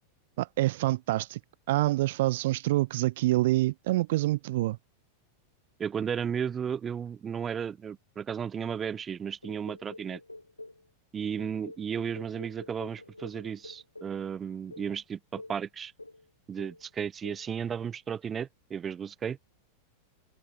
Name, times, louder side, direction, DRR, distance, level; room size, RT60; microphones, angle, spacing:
voice 1, 0.4-1.4 1.7-4.8, right 17 dB, 55° right, 0.9 m, -26 dB
voice 2, 5.8-10.2 11.1-15.9 16.5-19.4, right 7 dB, 20° right, 1.3 m, -34 dB
sound 1, 9.4-10.9 11.4-14.2 14.7-14.9 15.4-15.6 16.0-16.3 16.6-16.9 17.2-17.5, left 2 dB, 85° left, 1.8 m, -47 dB
figure-of-eight pair, 90°, 0 cm